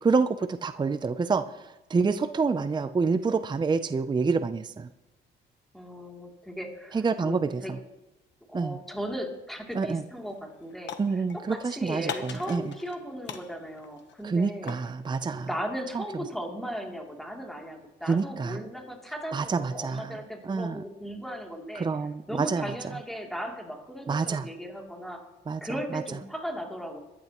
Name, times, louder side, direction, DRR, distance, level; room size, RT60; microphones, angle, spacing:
voice 1, 0.0-4.9 6.9-7.6 8.5-8.8 9.8-10.0 11.0-12.7 14.2-15.5 15.9-16.0 18.1-18.6 19.3-20.1 20.4-20.8 21.8-22.7 24.1-24.4 25.5-25.6 25.9-26.0, right 4 dB, 20° right, 11 dB, 0.5 m, -27 dB
voice 2, 5.7-7.7 8.5-14.7 15.3-21.9 22.3-25.3 25.6-27.0, equal, ahead, 0 dB, 2.9 m, -37 dB
sound 1, 9.7-10.0 10.3-11.6 12.1-13.0 13.3-14.9, left 8 dB, 65° left, 1.1 m, -40 dB
22.0 x 10.5 x 3.0 m, 1.0 s
cardioid pair, 90°, 20 cm